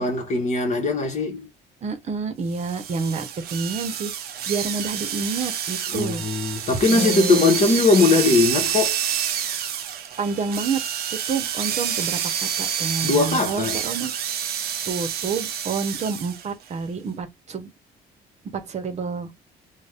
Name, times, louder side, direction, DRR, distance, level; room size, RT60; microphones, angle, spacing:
voice 1, 0.0-1.5 5.9-9.0 13.0-13.8, left 3 dB, 40° left, 1.1 m, -20 dB
voice 2, 1.8-6.2 6.9-7.6 10.2-10.8 11.3-14.1 14.8-17.7 18.5-19.3, right 5 dB, 40° right, 0.9 m, -29 dB
sound 1, 2.5-16.5, right 9 dB, 65° right, 0.7 m, -28 dB
2.6 x 2.3 x 3.3 m
cardioid pair, 110°, 17 cm